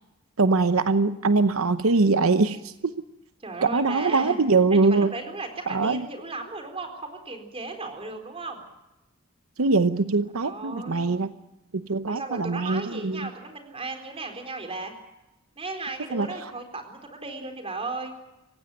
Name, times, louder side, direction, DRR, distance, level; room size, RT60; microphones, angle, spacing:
voice 1, 0.4-3.0 3.7-5.1 5.7-6.1 9.6-11.3 11.7-13.3 16.1-16.5, right 3 dB, 80° right, 11 dB, 0.9 m, -22 dB
voice 2, 3.4-4.4 4.7-8.6 10.4-11.2 12.1-14.9 15.6-18.1, right 3 dB, 30° right, 5 dB, 4.0 m, -35 dB
27.5 x 16.0 x 9.1 m, 0.97 s
head